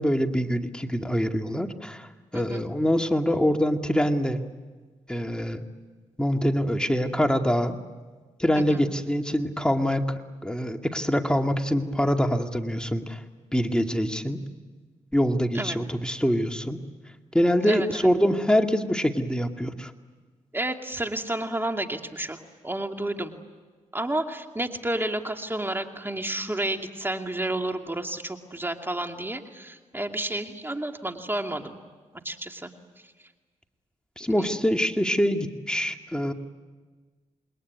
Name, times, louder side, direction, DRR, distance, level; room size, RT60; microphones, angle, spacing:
voice 1, 0.0-4.4 5.1-5.6 6.2-7.8 8.4-13.2 13.5-14.4 15.1-16.8 17.3-19.9 34.2-36.3, equal, 5° left, 4 dB, 2.3 m, -24 dB
voice 2, 2.3-2.6 8.5-8.8 15.5-15.8 17.7-18.1 20.5-23.3 23.9-31.8 32.2-32.7 34.4-34.5, right 1 dB, 15° right, 4 dB, 2.5 m, -31 dB
28.0 x 21.0 x 9.6 m, 1.4 s
cardioid pair, 60°, 13 cm